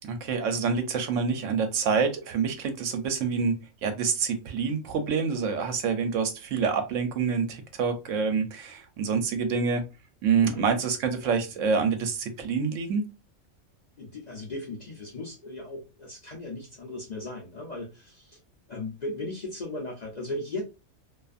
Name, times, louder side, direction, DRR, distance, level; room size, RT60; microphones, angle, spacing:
voice 1, 0.0-9.9 10.2-13.1, right 5 dB, 75° right, 0.9 m, -27 dB
voice 2, 14.0-18.4 18.7-20.6, left 2 dB, 45° left, 0.6 m, -37 dB
2.5 x 2.4 x 2.4 m
omnidirectional pair, 1.4 m